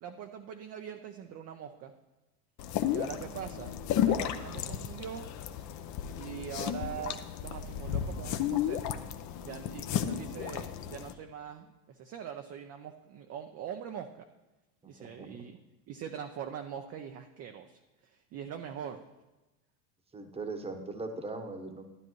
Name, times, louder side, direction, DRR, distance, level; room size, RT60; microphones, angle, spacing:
voice 1, 0.0-1.9 2.9-3.7 4.0-5.3 6.2-8.8 9.4-14.3 14.9-15.6 15.9-19.0, right 8 dB, 35° right, 5 dB, 0.6 m, -42 dB
sound 1, 2.6-11.1, left 10 dB, 40° left, 0.7 m, -33 dB
voice 2, 20.1-21.9, right 3 dB, 15° right, 7 dB, 1.1 m, -39 dB
12.5 x 10.5 x 3.1 m, 1.1 s
hypercardioid pair, 100°, 47 cm